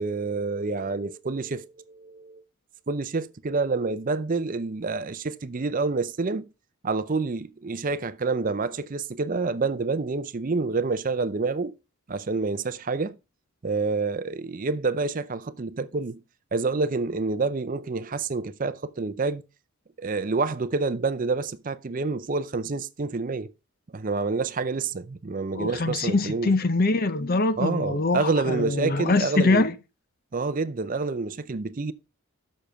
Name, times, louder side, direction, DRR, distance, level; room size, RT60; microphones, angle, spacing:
voice 1, 0.0-2.4 2.9-6.5 6.8-11.7 12.1-13.2 13.6-16.2 16.5-19.4 20.0-23.5 23.9-26.5 27.6-29.7 30.3-31.9, right 3 dB, 35° right, 0.5 m, -28 dB
voice 2, 25.5-29.7, left 3 dB, 40° left, 0.6 m, -23 dB
7.0 x 6.5 x 5.6 m
head